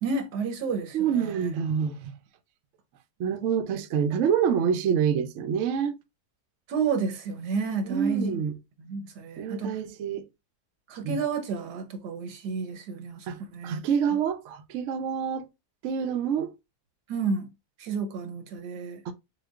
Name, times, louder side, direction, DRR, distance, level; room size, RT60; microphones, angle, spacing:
voice 1, 0.0-1.5 6.7-8.4 8.8-9.7 10.9-13.3 13.5-13.8 17.1-17.5 17.8-19.0, right 5 dB, 85° right, 1.4 m, -31 dB
voice 2, 0.7-2.1 3.2-6.0 7.8-8.6 9.4-10.3 11.0-11.2 13.3-15.5 15.8-16.5 19.1-19.2, right 7 dB, 65° right, 0.8 m, -27 dB
6.3 x 2.2 x 2.4 m
omnidirectional pair, 1.7 m